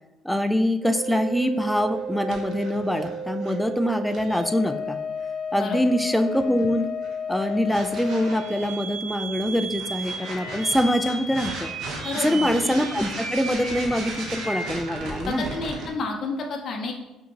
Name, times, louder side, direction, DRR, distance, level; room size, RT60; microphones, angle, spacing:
voice 1, 0.2-5.0 5.5-6.9 7.3-11.7 12.2-15.4, equal, 5° left, 7 dB, 0.3 m, -24 dB
sound 1, 0.8-15.9, equal, 70° right, 0.8 m, -33 dB
voice 2, 12.0-12.6 15.3-16.9, left 3 dB, 50° left, 1 dB, 0.6 m, -30 dB
4.9 x 2.8 x 2.7 m, 1.0 s
cardioid pair, 95°, 0 cm